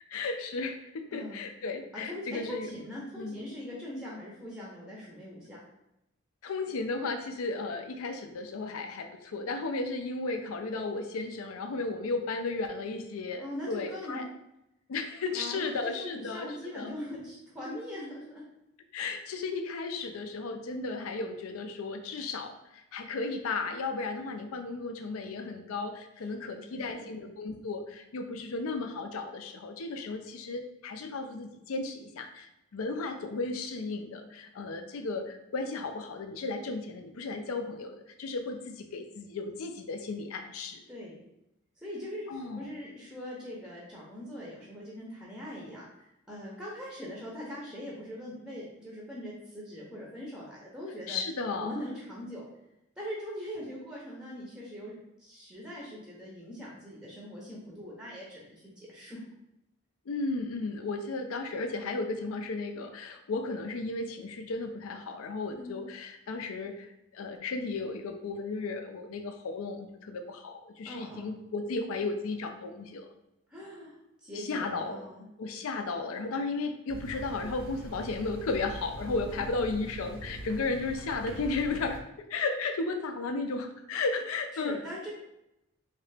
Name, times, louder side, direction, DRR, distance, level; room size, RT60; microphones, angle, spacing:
voice 1, 0.1-2.7 3.2-3.4 6.4-14.2 14.9-16.5 16.8-16.9 18.9-40.8 42.3-42.7 51.1-51.8 60.1-73.1 74.3-75.1 75.4-82.0 82.3-84.8, left 3 dB, 80° left, 6 dB, 0.4 m, -34 dB
voice 2, 1.1-1.4 1.9-5.6 13.4-14.2 15.3-18.4 26.3-27.2 40.9-41.2 41.8-51.2 51.6-52.5 53.0-54.9 55.2-59.2 65.5-65.8 70.8-71.3 73.5-74.0 74.2-75.2 79.3-79.7 84.5-85.1, left 1 dB, 5° right, -5 dB, 0.6 m, -41 dB
sound 1, 76.9-82.0, right 2 dB, 80° right, 0.5 m, -43 dB
3.2 x 2.9 x 3.2 m, 0.86 s
head